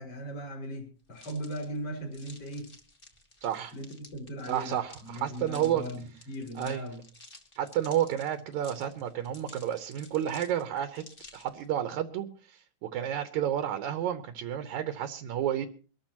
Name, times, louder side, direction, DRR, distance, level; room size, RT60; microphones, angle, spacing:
voice 1, 0.0-2.7 3.7-7.0, equal, 50° left, -1 dB, 5.1 m, -38 dB
sound 1, 1.1-11.7, left 2 dB, 25° left, 1.3 m, -53 dB
voice 2, 3.4-3.7 4.5-5.8 6.6-6.9 7.6-11.0 11.3-15.7, right 10 dB, 75° right, 9 dB, 2.2 m, -31 dB
24.0 x 13.5 x 2.9 m, 0.38 s
omnidirectional pair, 3.6 m